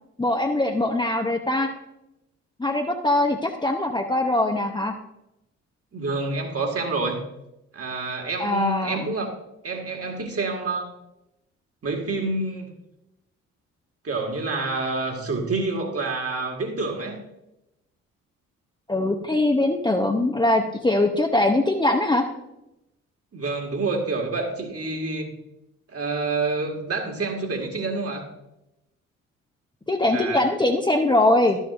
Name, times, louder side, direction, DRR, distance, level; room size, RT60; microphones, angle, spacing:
voice 1, 0.2-1.7 2.6-4.9 8.4-9.0 18.9-22.2 29.9-31.6, left 2 dB, 10° left, 2 dB, 0.8 m, -22 dB
voice 2, 5.9-7.3 7.7-9.3 9.6-10.9 11.8-12.8 14.0-17.2 23.3-25.3 25.9-28.3 30.1-30.4, right 3 dB, 35° right, 3 dB, 1.9 m, -28 dB
12.0 x 7.2 x 2.5 m, 0.89 s
figure-of-eight pair, 45°, 40 cm